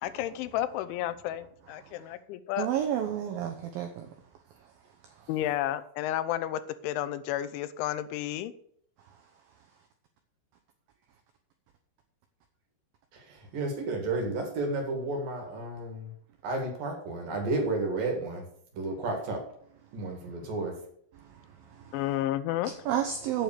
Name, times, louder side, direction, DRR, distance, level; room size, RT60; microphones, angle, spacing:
voice 1, 0.0-2.7 5.3-8.5 21.9-22.7, left 12 dB, 85° left, 13 dB, 3.1 m, -31 dB
voice 2, 2.6-4.1 21.9-22.0 22.6-23.4, right 10 dB, 80° right, 4 dB, 2.1 m, -30 dB
voice 3, 13.1-16.1 16.4-18.4 18.8-19.4 19.9-20.7, right 2 dB, 55° right, 2 dB, 3.4 m, -32 dB
9.0 x 6.9 x 6.6 m, 0.66 s
omnidirectional pair, 5.3 m